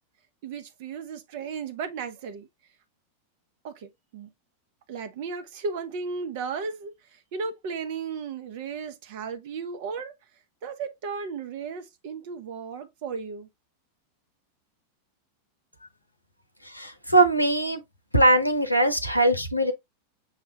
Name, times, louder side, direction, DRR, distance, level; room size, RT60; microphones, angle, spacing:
voice 1, 0.4-2.5 3.6-4.3 4.9-10.1 10.6-13.5, right 5 dB, 50° right, 0.9 m, -35 dB
voice 2, 16.6-17.8 18.1-19.7, right 1 dB, 90° left, 0.7 m, -21 dB
6.6 x 2.4 x 3.3 m
figure-of-eight pair, 90°, 0 cm